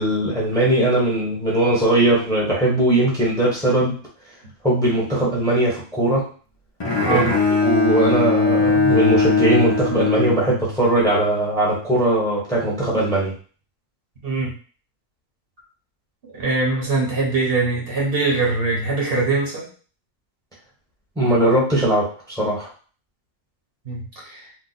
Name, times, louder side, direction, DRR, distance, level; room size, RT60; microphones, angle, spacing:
voice 1, 0.0-4.0 4.6-6.3 7.1-13.3 21.2-22.7, right 1 dB, 5° left, -4 dB, 0.9 m, -20 dB
Bowed string instrument, 6.8-11.0, left 3 dB, 35° left, 0.4 m, -20 dB
voice 2, 16.2-19.7 23.8-24.5, right 3 dB, 50° right, -3 dB, 1.1 m, -22 dB
2.8 x 2.2 x 4.0 m, 0.41 s
omnidirectional pair, 1.3 m